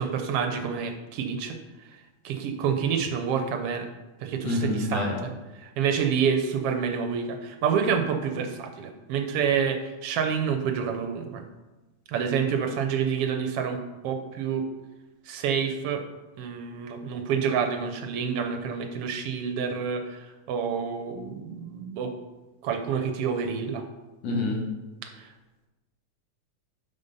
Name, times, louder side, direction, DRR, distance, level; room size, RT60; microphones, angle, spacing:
voice 1, 0.0-1.6 2.2-3.9 4.2-11.4 12.1-14.7 15.2-16.0 16.4-22.1 22.6-23.8 25.2-25.3, right 7 dB, 75° right, 6 dB, 1.4 m, -28 dB
voice 2, 4.4-5.2 24.2-24.6, left 2 dB, 65° left, -1 dB, 2.5 m, -27 dB
9.0 x 4.0 x 5.4 m, 1.1 s
omnidirectional pair, 3.3 m